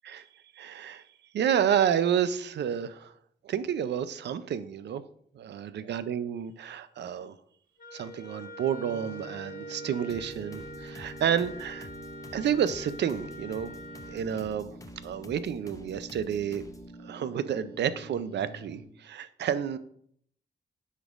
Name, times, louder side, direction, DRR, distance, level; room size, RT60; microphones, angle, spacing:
voice 1, 0.6-1.0 1.3-3.1 3.4-5.0 5.3-7.4 7.9-11.9 12.3-13.7 14.1-14.7 15.0-16.6 17.0-19.8, right 8 dB, 70° right, 13 dB, 0.5 m, -30 dB
Wind instrument woodwind instrument, 7.8-14.3, equal, 50° left, 1.3 m, -45 dB
sound 1, 8.7-18.8, right 2 dB, 35° right, 2.8 m, -46 dB
sound 2, 10.1-17.0, left 2 dB, 20° left, 0.5 m, -51 dB
9.8 x 5.2 x 2.5 m, 0.66 s
cardioid pair, 110°, 18 cm